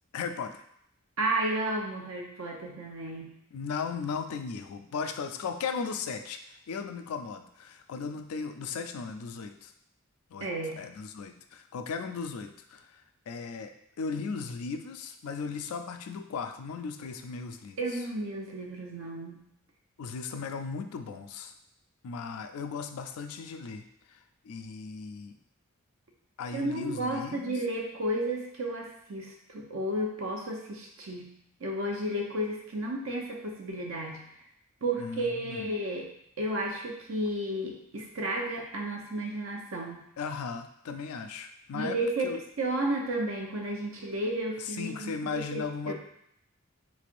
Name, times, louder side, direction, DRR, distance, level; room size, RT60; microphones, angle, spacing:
voice 1, 0.1-0.6 3.5-6.4 6.7-9.7 10.3-17.8 20.0-21.5 22.0-24.2 24.4-25.3 26.4-27.5 35.0-35.7 40.2-42.0 42.2-42.4 44.8-45.9, left 5 dB, 85° left, 7 dB, 0.4 m, -37 dB
voice 2, 1.2-3.3 10.4-10.8 17.8-19.4 26.5-31.3 31.6-34.3 34.8-36.1 36.4-40.1 41.7-42.3 42.6-45.9, right 1 dB, 65° right, 0 dB, 0.7 m, -32 dB
3.7 x 3.2 x 2.5 m, 0.72 s
head